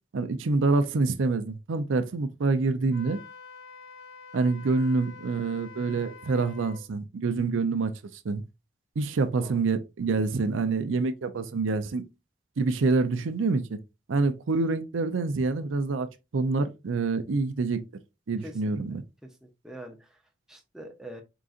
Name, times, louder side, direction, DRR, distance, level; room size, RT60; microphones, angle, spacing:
voice 1, 0.1-3.2 4.3-7.9 8.2-8.4 9.0-12.0 12.6-13.8 14.1-16.1 16.3-17.8 18.3-19.0, right 3 dB, 90° right, 0.5 m, -26 dB
Wind instrument woodwind instrument, 2.9-6.8, left 5 dB, 80° left, 0.7 m, -47 dB
voice 2, 18.9-20.2 20.5-21.2, right 1 dB, 5° right, 0.6 m, -44 dB
3.8 x 3.8 x 2.4 m
head